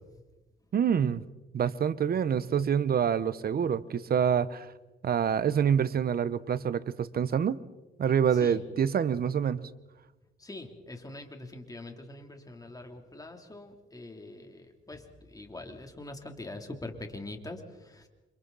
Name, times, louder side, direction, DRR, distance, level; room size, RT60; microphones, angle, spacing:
voice 1, 0.7-1.3 1.5-4.7 5.0-7.6 8.0-9.6, right 8 dB, 50° right, 16 dB, 1.1 m, -26 dB
voice 2, 10.4-15.0 15.3-18.0, left 2 dB, 20° left, 4 dB, 3.3 m, -43 dB
30.0 x 25.5 x 4.2 m, 1.1 s
cardioid pair, 90°, 20 cm